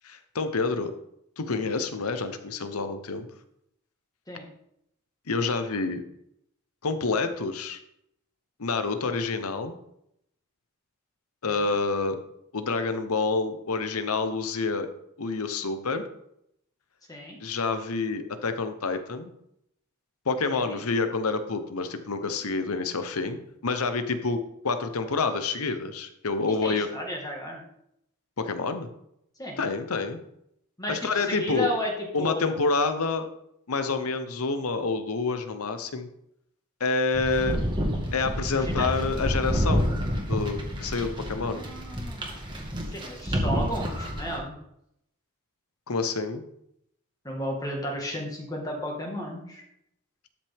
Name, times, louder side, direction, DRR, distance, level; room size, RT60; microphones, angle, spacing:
voice 1, 0.0-0.9 1.4-3.3 5.3-6.0 6.8-7.8 8.6-9.7 11.4-12.2 12.5-14.9 15.2-16.1 17.4-19.3 20.3-23.4 23.6-24.4 24.6-26.9 28.4-28.9 29.6-30.2 30.9-31.7 32.1-33.3 33.7-36.1 36.8-37.6 38.1-40.0 40.3-41.6 42.3-42.4 45.9-46.4, left 4 dB, 85° left, 9 dB, 0.9 m, -28 dB
voice 2, 26.6-27.6 29.4-29.6 30.8-32.6 38.5-38.9 41.4-42.5 42.9-44.5 47.2-49.6, equal, 15° left, 0 dB, 1.7 m, -33 dB
sound 1, 37.1-44.4, equal, 20° right, 1.6 m, -29 dB
12.5 x 6.0 x 3.6 m, 0.77 s
head